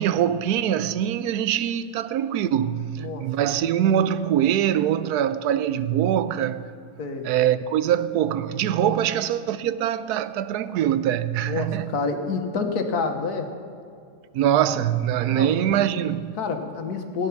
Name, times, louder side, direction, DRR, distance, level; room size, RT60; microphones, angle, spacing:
voice 1, 0.0-6.6 7.2-11.9 14.3-16.3, right 10 dB, 85° right, 1.1 m, -23 dB
voice 2, 3.0-3.3 7.0-7.3 8.7-9.0 11.4-13.5 15.2-15.6 16.4-17.3, left 4 dB, 85° left, 1.7 m, -28 dB
16.5 x 9.8 x 5.9 m
omnidirectional pair, 1.6 m